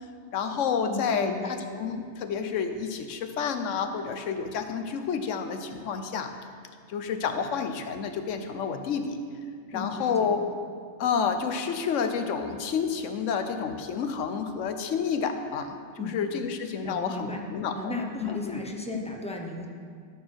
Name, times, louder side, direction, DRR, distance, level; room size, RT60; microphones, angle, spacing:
voice 1, 0.3-6.3 6.9-9.2 9.7-10.4 11.0-17.9 18.2-18.6, left 6 dB, 80° left, 7 dB, 1.1 m, -29 dB
voice 2, 0.9-1.5 9.7-10.3 16.0-16.2 16.8-17.4 17.7-19.7, left 2 dB, 5° left, 1 dB, 0.6 m, -35 dB
12.5 x 4.3 x 6.2 m, 2.1 s
omnidirectional pair, 1.3 m